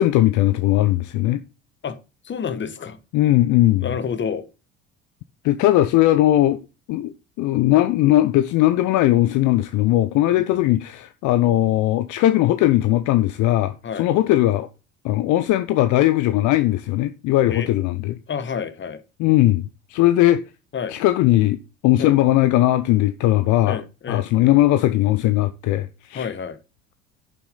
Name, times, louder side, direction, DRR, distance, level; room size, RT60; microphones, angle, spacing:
voice 1, 0.0-1.4 3.1-3.9 5.4-6.6 6.9-14.7 15.0-18.2 19.2-19.6 19.9-20.4 20.9-23.8 24.1-26.3, left 15 dB, 50° left, 0.8 m, -18 dB
voice 2, 2.2-3.0 3.8-4.5 10.4-10.6 13.8-14.1 17.5-17.7 18.3-19.0 20.7-21.0 22.0-22.2 23.7-24.3 26.1-26.6, left 6 dB, 30° left, 1.6 m, -29 dB
11.0 x 7.2 x 3.9 m
hypercardioid pair, 65°, 37 cm